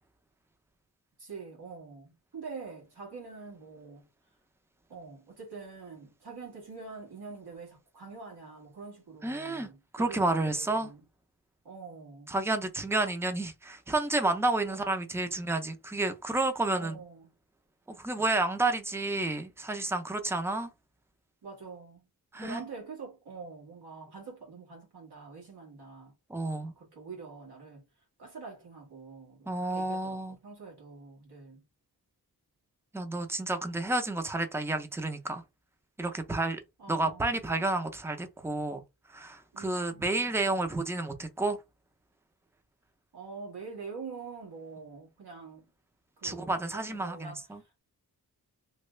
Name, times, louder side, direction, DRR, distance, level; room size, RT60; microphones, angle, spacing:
voice 1, 1.2-4.1 4.9-11.0 11.6-12.3 14.7-15.0 16.8-17.3 21.4-22.1 22.3-26.1 26.6-27.8 28.2-31.6 36.8-37.2 37.5-37.6 39.5-40.3 43.1-45.7 46.2-47.8, right 4 dB, 85° right, 1.7 m, -45 dB
voice 2, 9.2-9.7 9.9-10.9 12.3-17.0 17.9-20.7 22.3-22.6 26.3-26.7 29.5-30.4 32.9-35.4 36.0-36.6 36.9-38.8 39.1-41.6 46.2-47.6, right 2 dB, 5° right, 0.5 m, -30 dB
3.2 x 2.3 x 3.1 m
wide cardioid pair, 115°, 38 cm